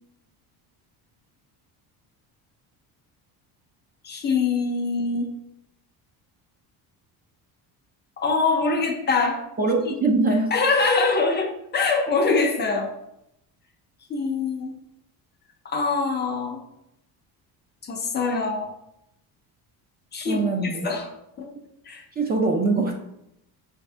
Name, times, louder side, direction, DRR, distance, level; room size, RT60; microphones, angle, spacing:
voice 1, 4.0-5.3 8.2-9.4 10.5-12.9 14.1-14.7 15.6-16.6 17.8-18.7 20.1-21.1 21.4-21.5 21.9-22.0, left 4 dB, 25° left, 2 dB, 0.5 m, -24 dB
voice 2, 9.6-10.5 20.3-20.9 21.6-21.7 22.2-22.9, right 3 dB, 25° right, 1 dB, 0.4 m, -22 dB
5.7 x 2.7 x 3.3 m, 0.80 s
cardioid pair, 160°, 39 cm